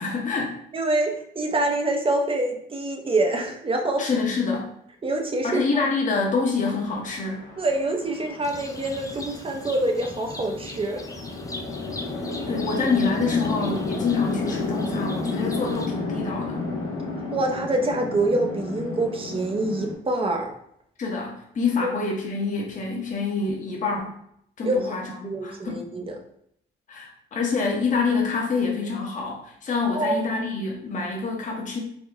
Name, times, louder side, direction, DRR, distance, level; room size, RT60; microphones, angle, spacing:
voice 1, 0.0-0.6 4.0-4.7 5.4-7.5 12.5-16.6 21.0-24.2 24.6-25.9 26.9-31.8, left 4 dB, 40° left, -2 dB, 0.8 m, -26 dB
voice 2, 0.7-4.0 5.0-5.6 7.6-11.1 17.3-20.5 24.6-25.0 25.2-26.2 29.9-30.3, right 2 dB, 25° right, 3 dB, 0.6 m, -25 dB
Chatter / Traffic noise roadway noise / Train, 6.5-19.9, left 3 dB, 90° left, 0.9 m, -32 dB
sound 1, 8.4-15.9, left 2 dB, 15° left, 0.4 m, -40 dB
3.6 x 2.1 x 3.4 m, 0.71 s
cardioid pair, 90°, 20 cm